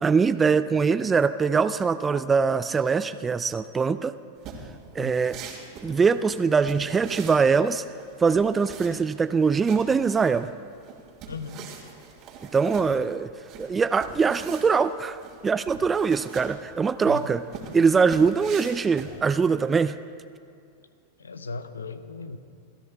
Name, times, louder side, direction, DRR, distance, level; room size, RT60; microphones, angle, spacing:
voice 1, 0.0-4.2 4.9-5.4 5.8-7.8 8.2-10.5 12.5-13.3 13.6-17.4 17.7-20.0, right 5 dB, 20° right, 12 dB, 0.4 m, -22 dB
sound 1, 4.4-19.6, right 5 dB, 45° right, 2.8 m, -43 dB
voice 2, 11.3-11.7 17.1-17.3 21.2-22.4, left 3 dB, 85° left, 11 dB, 0.7 m, -37 dB
29.5 x 14.0 x 2.3 m, 2.4 s
hypercardioid pair, 95°, 0 cm